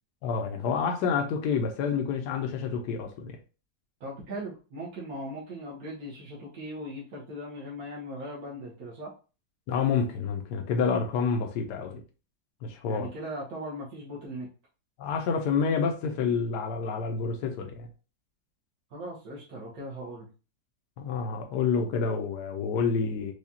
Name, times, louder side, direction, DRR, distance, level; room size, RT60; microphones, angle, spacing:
voice 1, 0.2-3.4 9.7-12.0 12.6-13.1 15.0-17.9 21.0-23.3, left 5 dB, 70° left, 3 dB, 1.2 m, -28 dB
voice 2, 4.0-9.1 12.9-14.5 18.9-20.3, right 1 dB, 60° right, -6 dB, 1.4 m, -39 dB
4.8 x 2.3 x 2.8 m, 0.34 s
omnidirectional pair, 1.9 m